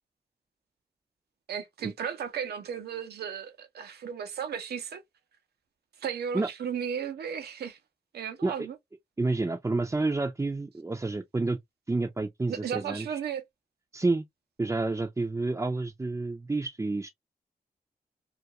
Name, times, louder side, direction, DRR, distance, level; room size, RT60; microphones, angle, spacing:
voice 1, 1.5-5.0 6.0-7.8 8.1-8.8 12.5-13.4, right 8 dB, 85° right, 0.6 m, -35 dB
voice 2, 9.2-11.6 11.9-13.2 13.9-14.2 14.6-17.1, right 3 dB, 15° right, 0.4 m, -29 dB
2.4 x 2.2 x 2.7 m
cardioid pair, 55°, 16 cm